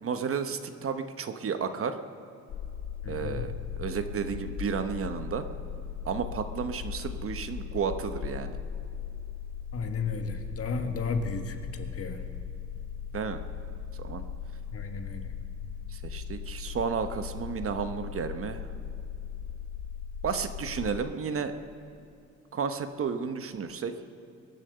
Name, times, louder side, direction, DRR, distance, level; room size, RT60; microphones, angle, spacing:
voice 1, 0.0-2.0 3.1-3.5 3.8-5.4 6.0-8.6 13.1-13.4 14.0-14.2 15.9-18.6 20.2-21.5 22.5-23.9, right 6 dB, 45° right, 9 dB, 1.0 m, -32 dB
sound 1, 2.5-21.0, left 7 dB, 75° left, 0.9 m, -38 dB
voice 2, 3.0-3.4 9.7-12.2 14.7-15.3, left 4 dB, 50° left, 6 dB, 1.5 m, -33 dB
22.5 x 7.5 x 6.8 m, 2.7 s
cardioid pair, 90°, 30 cm